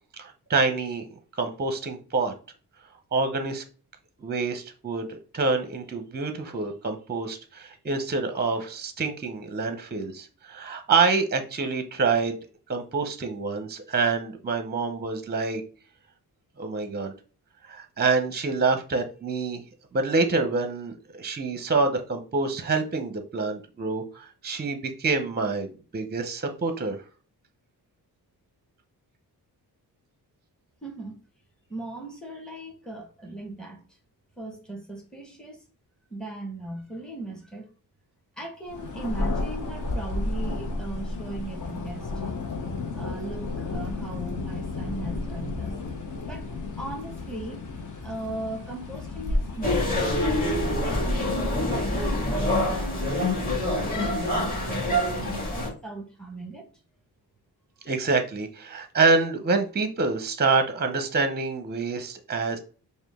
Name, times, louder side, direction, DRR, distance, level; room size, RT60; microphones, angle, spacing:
voice 1, 0.2-1.1 1.4-2.3 3.1-3.6 4.2-12.4 12.7-15.6 16.6-17.1 17.7-19.6 19.9-27.0 57.8-62.6, right 4 dB, 25° right, 0.6 m, -26 dB
voice 2, 30.8-31.2 31.7-33.8 34.4-35.6 36.1-37.7 38.4-42.1 42.9-45.7 46.2-46.5 46.8-47.7 48.0-50.2 50.8-56.7, right 2 dB, ahead, 1.1 m, -38 dB
Thunder, 38.7-52.3, left 2 dB, 50° left, 1.0 m, -33 dB
sound 1, 49.6-55.7, left 1 dB, 20° left, 2.0 m, -26 dB
4.9 x 2.2 x 3.5 m
wide cardioid pair, 105°, 40 cm